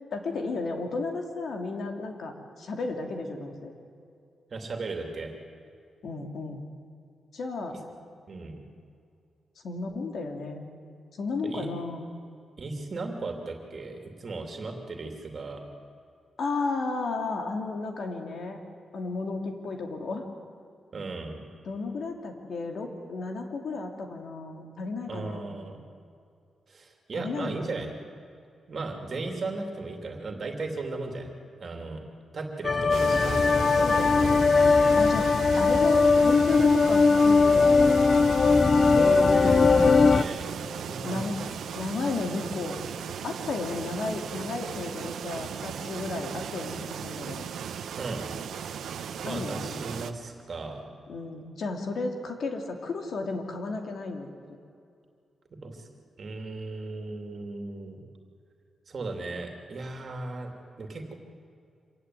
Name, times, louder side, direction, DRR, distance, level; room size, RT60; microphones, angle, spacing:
voice 1, 0.1-3.7 6.0-6.6 7.3-7.8 9.6-10.6 11.2-12.1 16.4-18.6 18.9-20.3 21.6-25.5 27.2-27.8 33.8-34.3 34.6-35.3 35.6-38.2 41.0-41.4 41.7-42.8 43.2-47.5 49.2-49.9 51.1-54.3, left 3 dB, 60° left, 4 dB, 2.6 m, -33 dB
voice 2, 4.5-5.3 7.7-7.8 8.3-8.6 11.4-11.7 12.6-15.6 20.9-21.4 25.1-25.8 26.7-27.9 28.7-31.3 31.6-32.0 32.3-35.0 38.9-40.4 40.9-41.4 48.0-48.3 49.2-50.8 55.5-55.9 56.2-58.0 58.9-60.5 60.8-61.1, right 3 dB, 40° right, 3 dB, 2.8 m, -36 dB
sound 1, 32.6-40.2, left 4 dB, 30° left, 0.6 m, -20 dB
sound 2, 32.9-50.1, right 8 dB, 85° right, 1.1 m, -37 dB
26.0 x 15.5 x 9.6 m, 2.4 s
wide cardioid pair, 165°, 0 cm